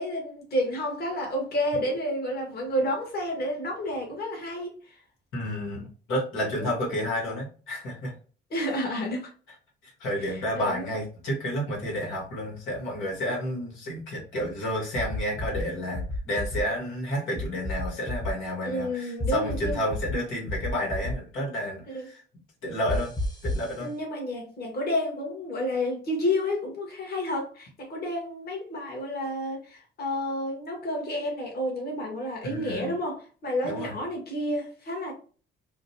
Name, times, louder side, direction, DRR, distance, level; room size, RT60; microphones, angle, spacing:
voice 1, 0.0-5.0 6.4-6.7 8.5-9.3 10.2-10.9 18.6-19.8 21.9-22.1 23.8-35.1, left 1 dB, 50° left, 0 dB, 1.6 m, -30 dB
voice 2, 5.3-8.1 9.8-22.2 22.6-23.1 23.4-23.9 32.4-32.9 33.6-33.9, equal, 90° left, -2 dB, 1.5 m, -31 dB
sound 1, 15.0-15.6 15.9-16.6 17.4-18.3 19.2-20.1 20.5-21.1 22.9-23.7, left 2 dB, 20° left, 0.9 m, -30 dB
4.9 x 2.2 x 2.7 m, 0.39 s
cardioid pair, 90°, 20 cm